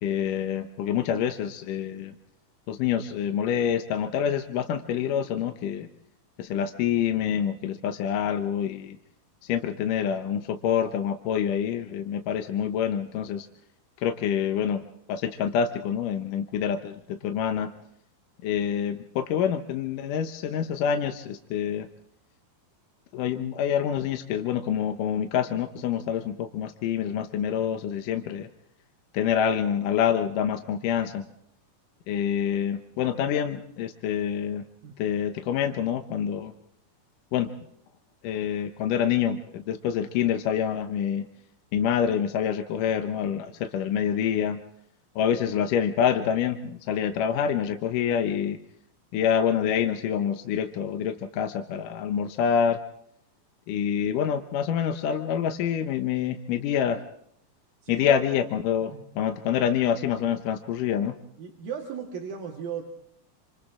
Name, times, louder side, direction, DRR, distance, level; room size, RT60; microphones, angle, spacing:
voice 1, 0.0-2.2 2.7-5.9 6.4-9.0 9.4-13.5 14.0-14.8 15.1-17.7 18.4-21.9 23.1-28.5 29.1-31.3 32.1-34.6 35.0-36.5 37.3-37.5 38.2-41.2 41.7-44.6 45.2-48.6 49.1-52.8 53.7-57.0 57.9-61.1, left 8 dB, 70° left, 6 dB, 2.3 m, -26 dB
voice 2, 61.4-62.9, right 7 dB, 70° right, 0 dB, 3.6 m, -36 dB
28.5 x 26.5 x 3.7 m, 0.70 s
omnidirectional pair, 4.4 m